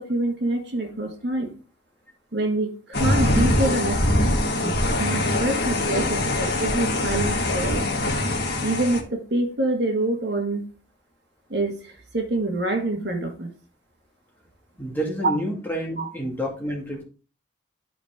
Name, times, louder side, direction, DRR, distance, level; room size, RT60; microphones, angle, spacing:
voice 1, 0.0-1.5 2.3-4.2 4.6-7.9 8.6-10.6 11.5-13.5 16.0-16.1, right 2 dB, 60° right, 3 dB, 1.7 m, -26 dB
sound 1, 2.9-9.0, left 1 dB, 55° left, 1.7 m, -23 dB
voice 2, 14.8-17.0, equal, 10° left, -2 dB, 2.4 m, -29 dB
12.0 x 4.8 x 3.6 m, 0.37 s
head